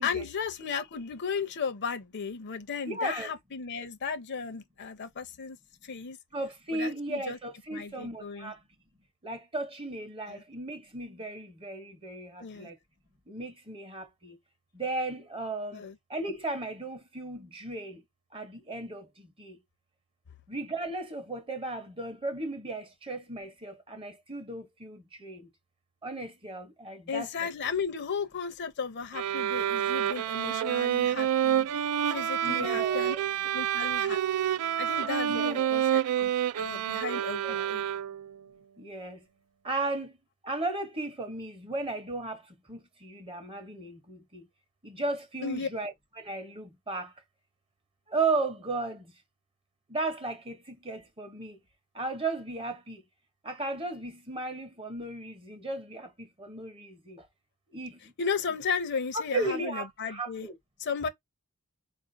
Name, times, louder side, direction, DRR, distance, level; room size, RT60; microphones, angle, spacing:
voice 1, 0.0-5.6 5.8-6.2 6.7-7.4 7.7-8.5 10.3-10.4 12.4-12.7 15.7-15.9 27.1-31.7 32.1-33.2 33.5-34.4 34.8-37.8 45.4-45.7 58.2-60.5 60.8-61.1, left 5 dB, 50° left, 0.6 m, -35 dB
voice 2, 2.8-3.3 6.3-8.6 9.2-12.8 13.3-14.4 14.7-15.8 16.1-18.0 18.3-19.6 20.5-25.5 26.0-27.3 32.4-33.3 35.3-35.7 37.4-37.7 38.8-39.2 39.6-40.1 40.4-42.4 42.7-44.4 44.8-47.1 48.1-49.1 49.9-51.6 51.9-53.0 53.4-57.2 57.7-58.0 59.1-60.6, right 2 dB, 25° right, 0.8 m, -35 dB
sound 1, 29.1-38.3, right 10 dB, 80° right, 0.3 m, -28 dB
4.4 x 2.5 x 2.6 m
head